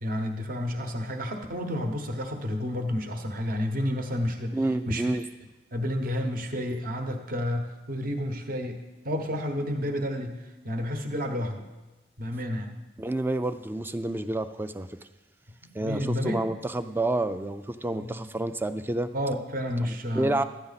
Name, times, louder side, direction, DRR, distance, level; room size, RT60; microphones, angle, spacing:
voice 1, 0.0-4.6 4.9-5.0 5.7-10.4 10.6-11.7 12.2-12.8 15.6-16.4 18.0-18.1 19.1-20.4, equal, 50° right, 5 dB, 1.0 m, -30 dB
voice 2, 4.5-5.3 13.0-15.0 15.7-19.1 19.8-20.4, right 2 dB, 10° right, 11 dB, 0.3 m, -29 dB
12.5 x 9.5 x 4.1 m, 1.1 s
head